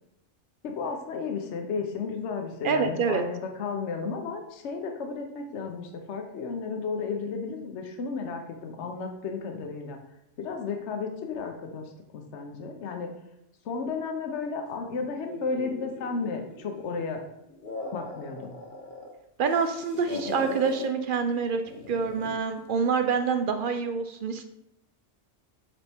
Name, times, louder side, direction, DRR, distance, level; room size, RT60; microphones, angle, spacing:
voice 1, 0.6-10.0 10.4-13.1 13.6-17.2 17.9-18.6, left 4 dB, 70° left, 4 dB, 1.0 m, -33 dB
voice 2, 2.6-3.2 19.4-21.6 21.9-24.4, right 5 dB, 60° right, 7 dB, 0.5 m, -26 dB
sound 1, 15.3-17.0 17.4-19.1 19.4-20.9 21.7-22.4, left 2 dB, 45° left, 1.0 m, -39 dB
7.2 x 4.1 x 3.4 m, 0.82 s
omnidirectional pair, 1.3 m